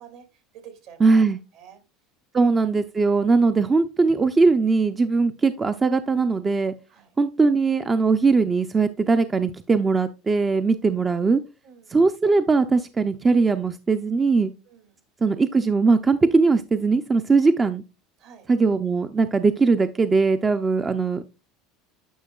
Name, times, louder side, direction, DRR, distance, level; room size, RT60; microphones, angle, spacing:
voice 1, 0.0-1.1 1.5-1.8 6.9-7.1 11.6-12.0 14.7-15.0 18.2-18.5 20.4-20.6, right 8 dB, 65° right, 6 dB, 2.5 m, -48 dB
voice 2, 1.0-1.4 2.3-6.7 7.2-11.4 11.9-14.5 15.2-17.8 18.5-21.3, right 4 dB, 20° right, 10 dB, 0.4 m, -20 dB
10.0 x 5.9 x 2.3 m, 0.27 s
supercardioid pair, 120°, 0 cm